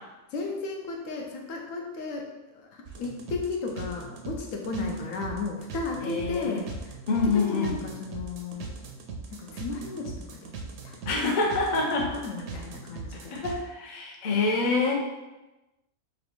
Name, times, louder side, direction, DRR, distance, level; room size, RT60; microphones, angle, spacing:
voice 1, 0.3-2.3 2.5-7.0 7.2-8.7 9.3-10.1 10.8-11.0 12.1-13.4, left 4 dB, 75° left, 1 dB, 0.9 m, -34 dB
sound 1, 2.9-13.6, right 4 dB, 65° right, 0.7 m, -40 dB
voice 2, 6.0-6.6 7.1-7.7 11.1-12.1 13.3-14.9, left 3 dB, 45° left, -1 dB, 0.6 m, -26 dB
3.3 x 2.7 x 4.2 m, 1.1 s
omnidirectional pair, 1.5 m